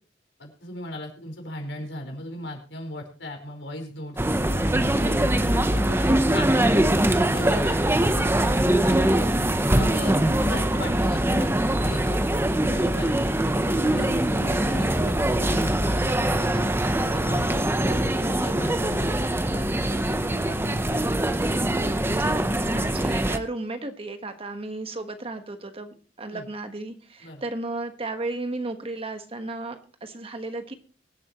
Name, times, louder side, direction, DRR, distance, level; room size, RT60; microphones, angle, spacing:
voice 1, 0.4-4.2 4.4-7.8 8.0-9.1 9.7-11.5 11.8-16.7 17.0-21.1 26.3-26.5 27.2-27.4, left 1 dB, 90° left, 2 dB, 4.9 m, -37 dB
sound 1, 4.2-23.4, right 1 dB, 15° right, 0.8 m, -23 dB
voice 2, 21.8-30.7, right 2 dB, 30° right, 7 dB, 1.4 m, -34 dB
23.5 x 8.4 x 3.0 m, 0.36 s
head